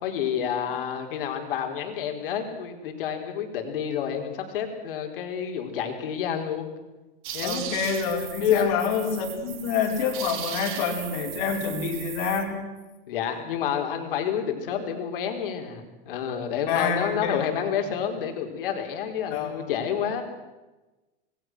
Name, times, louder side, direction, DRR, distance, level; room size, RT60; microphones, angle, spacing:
voice 1, 0.0-6.7 7.3-7.6 8.4-8.8 13.1-20.2, left 8 dB, 65° left, 4 dB, 4.6 m, -29 dB
sound 1, 7.2-12.4, right 10 dB, 55° right, 2.8 m, -37 dB
voice 2, 7.4-12.6 16.7-17.4 17.8-17.9 19.3-19.8, left 6 dB, 40° left, 3 dB, 4.6 m, -27 dB
26.5 x 21.0 x 6.3 m, 1.1 s
supercardioid pair, 175°, 29 cm